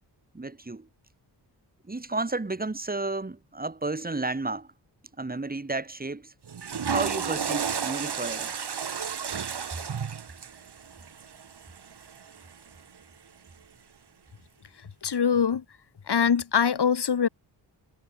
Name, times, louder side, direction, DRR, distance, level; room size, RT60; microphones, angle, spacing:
voice 1, 0.3-0.9 1.9-4.7 5.2-6.3 6.9-8.5, right 2 dB, 20° right, 3.7 m, -32 dB
Water / Toilet flush, 6.4-12.7, right 7 dB, 65° right, 6.8 m, -33 dB
voice 2, 15.0-15.6 16.1-17.3, left 7 dB, 65° left, 5.7 m, -23 dB
wide cardioid pair, 145°, 43 cm